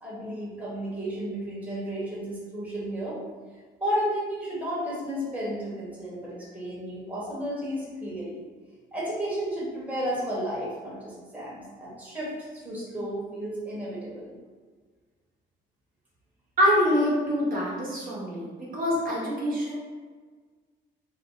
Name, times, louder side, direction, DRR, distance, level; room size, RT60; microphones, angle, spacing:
voice 1, 0.0-3.2 3.8-8.4 8.9-14.3, equal, 5° right, -7 dB, 1.1 m, -33 dB
voice 2, 16.6-18.4 18.7-19.8, equal, 45° right, -6 dB, 1.1 m, -25 dB
2.6 x 2.1 x 3.8 m, 1.5 s
cardioid pair, 90°, 20 cm